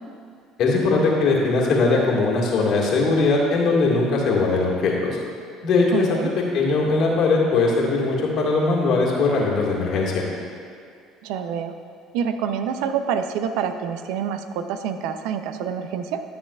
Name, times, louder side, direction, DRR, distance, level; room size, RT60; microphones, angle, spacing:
voice 1, 0.6-5.2 5.6-6.2 6.5-10.2, left 3 dB, 60° left, -3 dB, 1.8 m, -20 dB
voice 2, 5.9-6.3 11.2-11.8 12.1-16.2, right 7 dB, 75° right, 9 dB, 0.5 m, -27 dB
12.5 x 6.7 x 2.4 m, 2.2 s
supercardioid pair, 85°, 0 cm